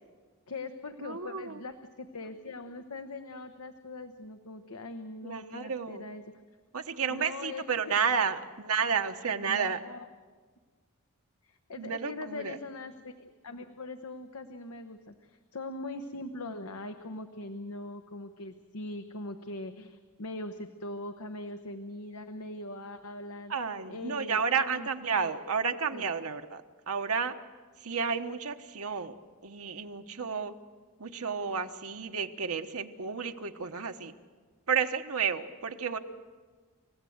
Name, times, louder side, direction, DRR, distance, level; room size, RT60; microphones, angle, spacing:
voice 1, 0.5-6.4 7.1-8.0 9.5-10.1 11.4-23.5 23.9-24.9 25.1-25.3 25.9-26.1, left 2 dB, 85° left, 8 dB, 1.0 m, -41 dB
voice 2, 1.0-1.6 5.2-6.0 6.7-9.8 11.8-12.6 23.5-27.3 27.8-29.2 29.4-30.5 31.0-34.1 34.7-36.0, right 6 dB, 70° right, 6 dB, 1.1 m, -31 dB
29.5 x 15.5 x 8.0 m, 1.5 s
head